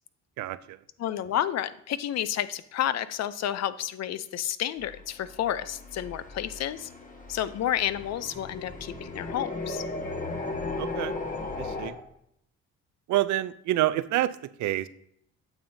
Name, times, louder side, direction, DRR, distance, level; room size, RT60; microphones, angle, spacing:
voice 1, 0.4-0.8 10.8-11.1 11.6-11.9 13.1-14.9, right 14 dB, 70° right, 15 dB, 0.5 m, -28 dB
voice 2, 1.0-6.9 7.3-9.8, left 11 dB, 60° left, 15 dB, 0.5 m, -30 dB
sound 1, 4.8-11.9, left 3 dB, 25° left, 1.3 m, -36 dB
8.9 x 7.0 x 2.6 m, 0.73 s
cardioid pair, 90°, 30 cm